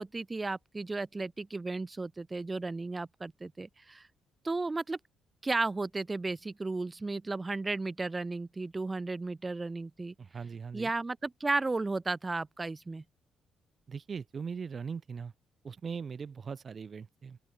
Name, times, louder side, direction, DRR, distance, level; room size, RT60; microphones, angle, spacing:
voice 1, 0.0-4.0 4.4-5.0 5.4-10.1 10.7-13.0, right 3 dB, 20° right, 2.8 m, -34 dB
voice 2, 10.2-10.9 13.9-15.3 15.6-17.4, right 6 dB, 40° right, 2.3 m, -40 dB
open air
cardioid pair, 90°, 0 cm